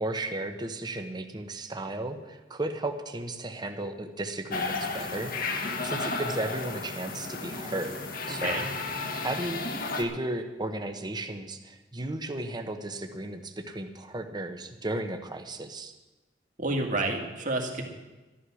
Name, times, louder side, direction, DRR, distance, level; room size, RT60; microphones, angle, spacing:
voice 1, 0.0-8.6 9.2-9.6 10.0-15.9, right 1 dB, 25° right, 6 dB, 1.0 m, -34 dB
sound 1, 4.5-10.0, left 3 dB, 55° left, 1.4 m, -33 dB
voice 2, 16.6-17.8, right 2 dB, 45° right, 2 dB, 2.1 m, -29 dB
13.0 x 11.5 x 6.3 m, 1.1 s
head